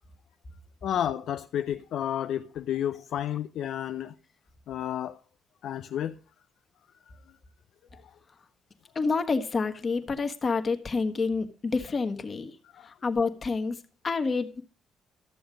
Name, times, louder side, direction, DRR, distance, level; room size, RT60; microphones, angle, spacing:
voice 1, 0.8-4.1 4.7-5.2 5.6-6.2 12.7-12.9, left 10 dB, 75° left, 0.5 m, -31 dB
voice 2, 8.9-12.6 12.8-14.6, left 4 dB, 35° left, 1.4 m, -28 dB
13.5 x 7.0 x 5.1 m
cardioid pair, 90°, 0 cm